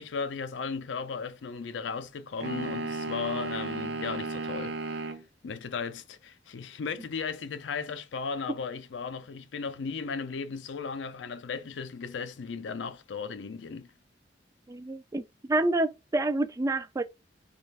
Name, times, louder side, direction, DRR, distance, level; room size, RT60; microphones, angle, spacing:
voice 1, 0.0-5.1 5.4-13.9, left 5 dB, 85° left, 0.4 m, -36 dB
sound 1, 2.4-5.2, right 3 dB, 65° right, 0.6 m, -34 dB
voice 2, 14.7-17.0, right 2 dB, 20° right, 0.3 m, -28 dB
3.2 x 2.4 x 3.2 m
head